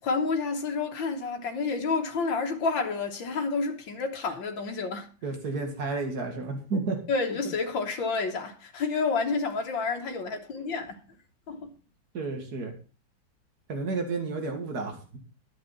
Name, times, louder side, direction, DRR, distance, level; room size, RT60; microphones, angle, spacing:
voice 1, 0.0-5.1 7.1-11.0 11.5-11.7, left 4 dB, 90° left, 2.0 m, -29 dB
voice 2, 5.2-7.0 12.1-12.7 13.7-15.2, right 3 dB, 55° right, 2.5 m, -31 dB
10.5 x 7.3 x 5.7 m
omnidirectional pair, 2.0 m